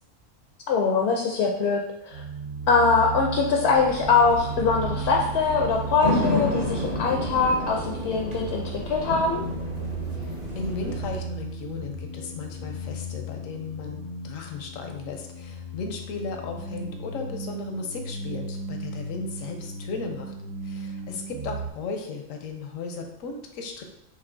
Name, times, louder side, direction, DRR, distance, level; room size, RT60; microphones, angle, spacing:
voice 1, 0.7-2.2 2.7-9.5, left 4 dB, 65° left, 1 dB, 0.7 m, -23 dB
sound 1, 2.1-21.7, right 3 dB, 65° right, 0.9 m, -35 dB
sound 2, 3.8-11.2, left 2 dB, 35° right, 0.9 m, -31 dB
voice 2, 10.1-20.3 20.6-23.8, left 4 dB, 80° left, 3 dB, 1.1 m, -36 dB
6.6 x 2.7 x 2.6 m, 0.84 s
omnidirectional pair, 1.4 m